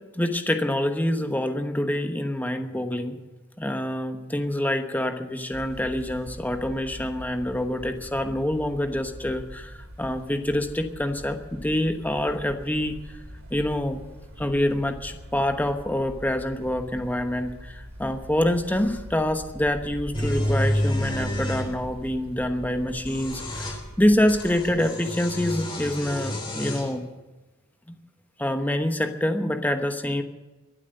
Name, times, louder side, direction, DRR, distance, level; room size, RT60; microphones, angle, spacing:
voice 1, 0.1-3.2 3.6-13.0 13.5-14.0 14.4-27.1 27.9-28.0 28.4-30.2, left 1 dB, 10° left, 6 dB, 1.1 m, -26 dB
sound 1, 5.5-24.8, equal, 65° right, 2.7 m, -42 dB
sound 2, 20.1-21.7 22.9-23.8 24.3-27.0, equal, 25° left, 3.2 m, -29 dB
23.0 x 8.3 x 6.6 m, 1.1 s
head